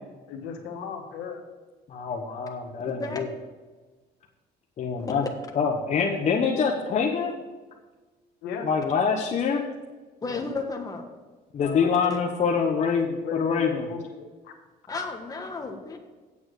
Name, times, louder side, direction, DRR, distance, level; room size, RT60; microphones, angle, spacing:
voice 1, 0.3-1.4 8.4-8.6 10.2-10.4 11.6-12.2 12.9-14.5, left 6 dB, 85° left, 3 dB, 1.5 m, -36 dB
voice 2, 1.9-3.3 4.8-5.2 5.6-7.3 8.6-9.6 11.5-13.9, left 5 dB, 45° left, 0 dB, 1.1 m, -25 dB
voice 3, 2.8-3.2 5.0-5.1 10.2-11.1 12.1-12.2 14.9-16.0, left 3 dB, 20° left, 2 dB, 1.4 m, -33 dB
8.3 x 7.1 x 6.5 m, 1.3 s
cardioid pair, 110°, 17 cm